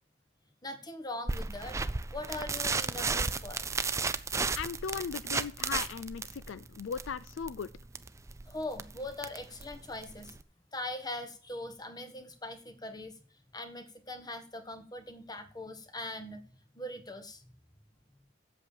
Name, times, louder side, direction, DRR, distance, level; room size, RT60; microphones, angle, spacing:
voice 1, 0.6-1.8 2.1-3.6 8.5-10.4 10.7-13.2 13.5-17.4, left 1 dB, 20° left, 7 dB, 1.3 m, -41 dB
sound 1, 1.3-10.4, right 4 dB, 15° right, 0.4 m, -34 dB
voice 2, 4.5-7.7, left 6 dB, 75° left, 16 dB, 0.4 m, -37 dB
8.1 x 7.2 x 7.3 m, 0.42 s
head